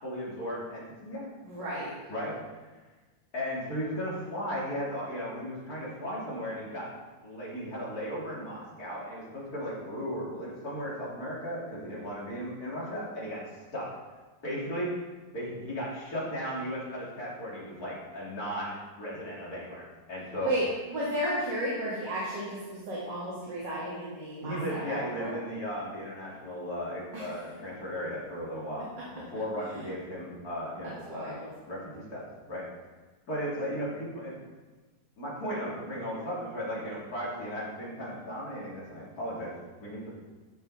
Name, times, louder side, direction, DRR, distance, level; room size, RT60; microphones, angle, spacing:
voice 1, 0.0-1.3 2.1-2.4 3.3-7.0 7.2-13.4 13.7-13.9 14.4-14.9 15.3-19.8 20.1-20.5 24.4-31.4 31.7-32.7 33.3-34.3 35.2-40.1, equal, 50° left, -6 dB, 3.6 m, -36 dB
voice 2, 1.4-2.0 20.4-25.4 27.1-27.5 29.6-29.9 30.8-31.5, right 1 dB, 70° right, -8 dB, 3.1 m, -34 dB
14.5 x 6.3 x 4.3 m, 1.2 s
omnidirectional pair, 2.0 m